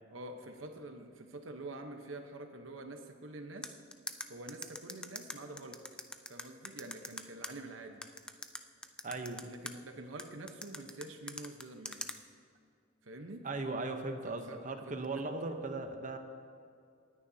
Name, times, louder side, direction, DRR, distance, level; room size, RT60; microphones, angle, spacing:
voice 1, 0.1-3.8 4.3-5.8 6.3-8.0 9.3-12.0 13.0-13.4 14.2-14.6 14.8-15.2 15.5-15.6, right 2 dB, 90° right, 5 dB, 1.0 m, -47 dB
sound 1, 3.6-7.5 8.0-9.7 10.2-12.2, left 2 dB, 5° left, 0.4 m, -42 dB
voice 2, 9.0-9.4 13.4-16.2, right 3 dB, 40° right, 6 dB, 0.9 m, -38 dB
19.0 x 9.8 x 2.8 m, 2.4 s
head